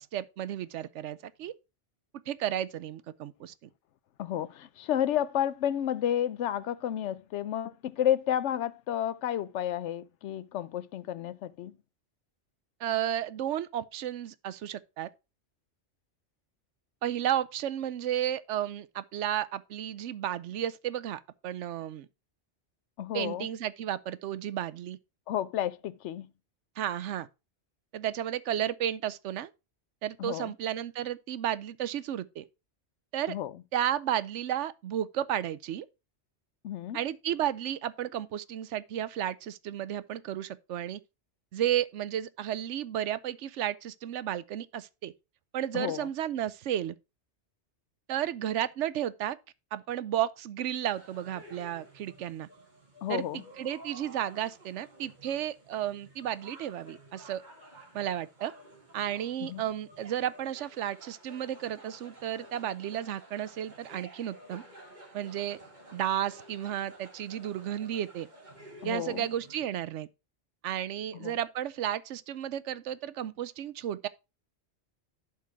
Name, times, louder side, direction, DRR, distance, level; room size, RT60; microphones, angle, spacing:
voice 1, 0.0-1.5 2.3-3.7 12.8-15.1 17.0-22.1 23.1-25.0 26.8-27.3 27.9-29.5 30.0-32.4 33.1-33.4 33.7-35.9 36.9-41.0 41.5-45.1 45.5-46.9 48.1-49.4 49.7-52.5 53.1-57.4 57.9-58.5 58.9-64.6 65.1-65.6 65.9-68.3 68.8-70.1 70.6-74.1, right 11 dB, 85° right, 0.9 m, -33 dB
voice 2, 4.2-11.8 23.0-23.5 25.3-26.3 30.2-30.5 33.3-33.6 36.6-37.0 45.7-46.1 53.0-53.4 59.4-59.6 68.8-69.3 71.1-71.4, left 11 dB, 80° left, 0.9 m, -31 dB
sound 1, 50.9-69.6, right 1 dB, 40° right, 2.3 m, -52 dB
11.5 x 4.3 x 4.6 m
omnidirectional pair, 1.2 m